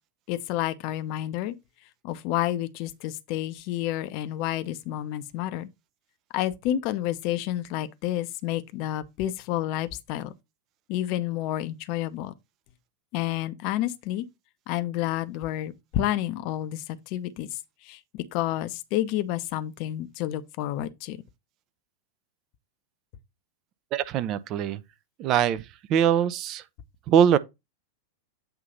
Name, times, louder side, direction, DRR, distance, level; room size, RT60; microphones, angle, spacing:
voice 1, 0.3-1.5 2.0-5.7 6.3-10.3 10.9-12.3 13.1-14.3 14.7-17.5 17.8-21.2, left 13 dB, 45° left, 0.6 m, -30 dB
voice 2, 23.9-24.8 25.2-26.6 27.1-27.4, right 9 dB, 35° right, 0.5 m, -22 dB
7.9 x 2.8 x 5.2 m
figure-of-eight pair, 90°, 0 cm